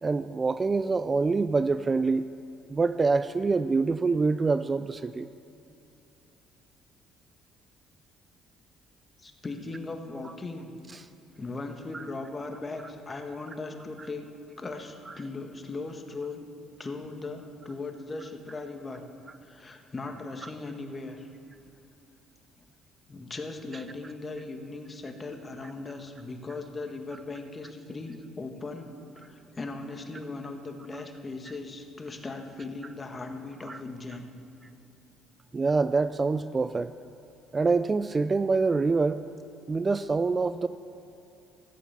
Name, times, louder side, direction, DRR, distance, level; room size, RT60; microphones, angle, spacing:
voice 1, 0.0-2.3 2.7-5.3 11.9-12.0 33.7-33.8 35.5-36.9 37.5-39.2 39.7-40.7, right 4 dB, 30° right, 13 dB, 0.4 m, -25 dB
voice 2, 9.2-10.7 11.4-14.2 14.6-16.5 16.8-19.0 19.4-21.3 23.1-28.9 29.1-34.2, left 3 dB, 30° left, 5 dB, 1.5 m, -38 dB
14.0 x 8.3 x 7.3 m, 2.8 s
supercardioid pair, 70°, 0 cm